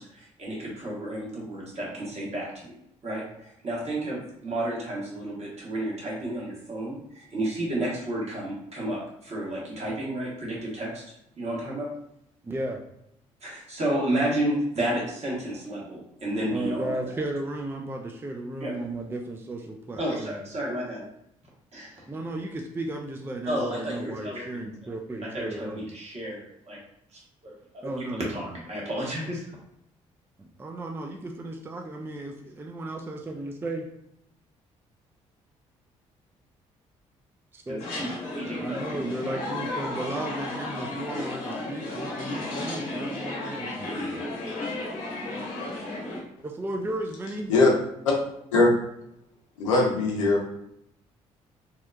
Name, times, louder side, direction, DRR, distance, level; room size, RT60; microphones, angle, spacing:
voice 1, 0.0-2.8 3.0-11.0 11.4-11.9 13.4-16.9 18.6-18.8 19.9-21.1 21.7-22.0 23.4-24.7 25.2-26.8 27.1-27.5 28.0-29.4 37.7-38.9, right 1 dB, 45° right, -4 dB, 1.2 m, -31 dB
voice 2, 12.4-12.8 16.4-20.4 22.1-25.9 27.8-28.3 30.4-33.9 37.5-37.8 38.6-44.1 46.4-47.5, right 1 dB, 15° right, 3 dB, 0.3 m, -34 dB
sound 1, 37.8-46.2, left 2 dB, 65° left, 0.8 m, -33 dB
voice 3, 49.6-50.4, left 3 dB, 85° left, -1 dB, 0.5 m, -20 dB
2.7 x 2.2 x 2.4 m, 0.78 s
hypercardioid pair, 45°, 16 cm